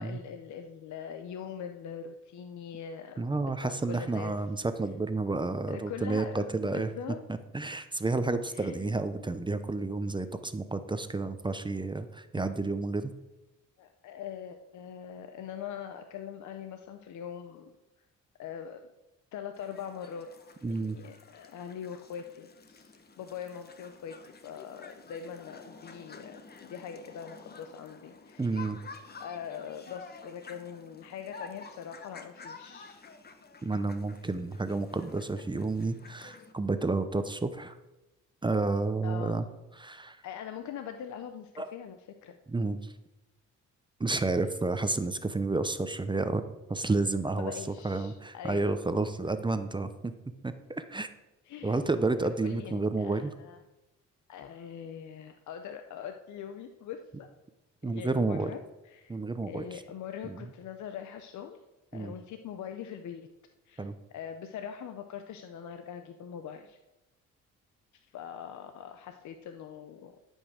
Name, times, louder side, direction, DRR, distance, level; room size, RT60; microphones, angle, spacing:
voice 1, 0.0-4.3 5.7-7.2 8.5-8.9 13.8-17.8 18.4-18.9 19.3-20.3 20.7-28.5 29.2-33.1 39.0-39.4 40.2-42.4 47.4-48.8 51.5-51.8 52.4-53.6 54.3-57.3 57.8-59.2 59.5-61.6 61.9-63.3 63.7-66.8 68.1-70.1, left 8 dB, 70° left, 7 dB, 0.8 m, -42 dB
voice 2, 3.2-6.9 7.5-13.1 20.6-21.0 28.4-28.8 33.6-37.8 38.4-39.5 39.8-40.2 41.6-41.7 42.5-42.9 44.0-46.4 46.7-47.5 47.8-50.1 50.4-51.1 51.6-53.3 57.8-58.5 59.1-59.8 60.2-60.5 61.9-62.1 63.8-63.9, right 3 dB, 15° right, 10 dB, 0.7 m, -30 dB
sound 1, 19.5-36.5, left 4 dB, 30° left, 1.2 m, -50 dB
12.5 x 5.4 x 6.3 m, 1.0 s
cardioid pair, 90°, 30 cm